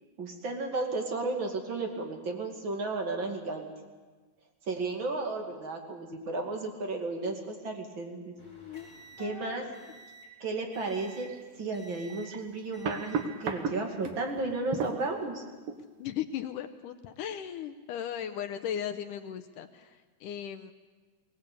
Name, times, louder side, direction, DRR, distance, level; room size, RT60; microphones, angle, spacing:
voice 1, 0.2-3.7 4.7-8.3 9.2-9.7 10.4-11.3 11.6-15.4, right 3 dB, 35° right, 3 dB, 2.4 m, -33 dB
voice 2, 8.2-8.9 9.2-9.9 16.0-20.7, left 9 dB, 75° left, 9 dB, 2.0 m, -38 dB
sound 1, 8.4-10.4 10.7-11.4 11.7-12.4 12.7-13.4 14.1-14.4, right 3 dB, 10° left, 6.6 m, -52 dB
sound 2, 11.3-11.4 12.1-14.2 14.7-15.1 15.7-15.8, right 5 dB, 60° right, 1.6 m, -34 dB
22.5 x 18.5 x 8.5 m, 1.3 s
omnidirectional pair, 4.4 m